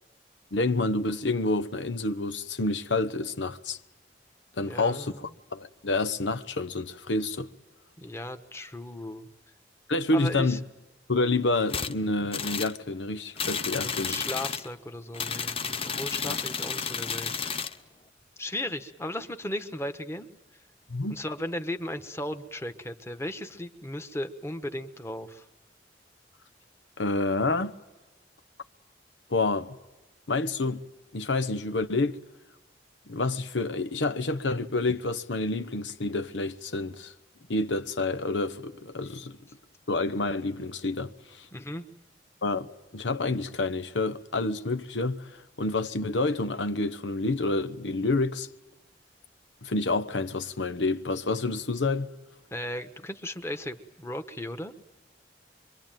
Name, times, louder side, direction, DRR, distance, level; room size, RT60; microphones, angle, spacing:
voice 1, 0.5-3.8 4.6-7.5 9.9-10.6 11.1-14.2 16.2-16.4 20.9-21.2 27.0-27.7 29.3-29.8 30.3-30.8 31.1-32.2 33.1-37.1 37.5-39.4 39.9-41.4 42.4-42.7 42.9-48.5 49.6-52.1, left 2 dB, 90° left, 0.9 m, -28 dB
voice 2, 4.6-5.3 8.0-9.3 10.1-10.6 13.7-17.6 18.4-20.3 21.1-25.4 41.5-41.9 52.5-54.7, left 1 dB, 15° left, 1.2 m, -36 dB
sound 1, 11.7-11.9 12.3-12.8 13.4-14.7 15.1-17.8, left 6 dB, 30° left, 0.8 m, -32 dB
25.0 x 24.0 x 9.1 m
head